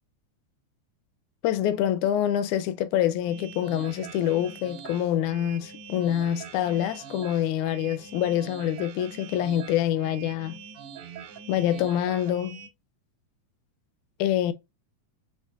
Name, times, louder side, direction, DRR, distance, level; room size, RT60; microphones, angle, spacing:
voice 1, 1.4-10.6 11.5-12.6 14.2-14.5, left 11 dB, 80° left, 1.9 m, -26 dB
sound 1, 3.2-12.7, right 7 dB, 80° right, 1.2 m, -43 dB
6.7 x 3.1 x 2.4 m
omnidirectional pair, 3.5 m